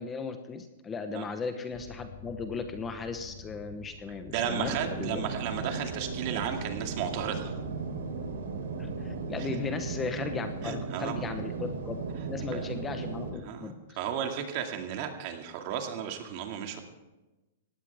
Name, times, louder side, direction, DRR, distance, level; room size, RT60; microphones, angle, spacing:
voice 1, 0.0-5.2 8.8-12.0 12.3-14.0, left 5 dB, 15° left, 7 dB, 0.9 m, -36 dB
sound 1, 1.7-9.3, left 5 dB, 45° left, 2.8 m, -48 dB
voice 2, 4.3-7.5 9.4-9.5 10.6-11.2 12.5-12.7 13.4-16.8, right 8 dB, 40° right, 4 dB, 2.1 m, -34 dB
sound 2, 4.3-13.3, right 4 dB, 85° right, 3.8 m, -36 dB
18.5 x 15.5 x 3.5 m, 1.1 s
hypercardioid pair, 160°, 0 cm